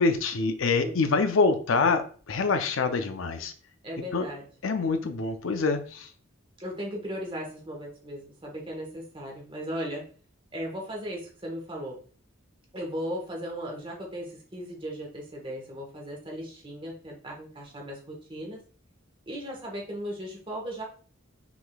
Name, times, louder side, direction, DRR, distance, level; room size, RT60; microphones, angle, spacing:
voice 1, 0.0-3.5 4.1-4.3 4.6-6.1, left 4 dB, 75° left, 8 dB, 0.5 m, -25 dB
voice 2, 3.8-4.4 6.6-10.0 10.5-12.0 12.7-18.6 19.3-20.8, equal, 25° right, -1 dB, 1.3 m, -37 dB
6.0 x 3.7 x 2.3 m, 0.41 s
head